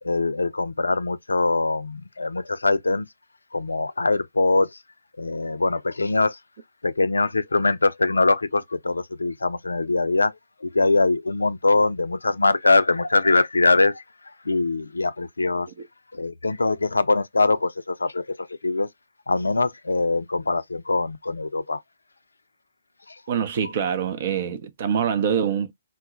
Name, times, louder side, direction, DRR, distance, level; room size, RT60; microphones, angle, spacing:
voice 1, 0.0-3.1 3.5-4.8 5.2-6.4 6.8-15.7 16.1-18.9 19.3-21.8 23.1-23.2, left 3 dB, 70° left, 0.4 m, -23 dB
voice 2, 23.3-25.7, right 7 dB, 45° right, 0.5 m, -24 dB
2.1 x 2.1 x 3.8 m
figure-of-eight pair, 125°, 0 cm